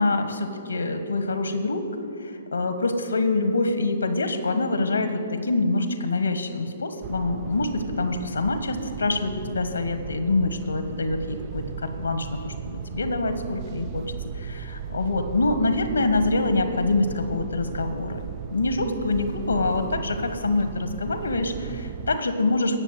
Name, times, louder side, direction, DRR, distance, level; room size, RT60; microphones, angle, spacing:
voice 1, 0.0-1.9 2.2-14.0 14.3-18.2 18.5-22.8, left 2 dB, 85° left, 8 dB, 1.4 m, -25 dB
sound 1, 7.0-22.2, right 8 dB, 40° right, 0.6 m, -36 dB
16.5 x 6.9 x 9.0 m, 2.5 s
figure-of-eight pair, 125°, 0 cm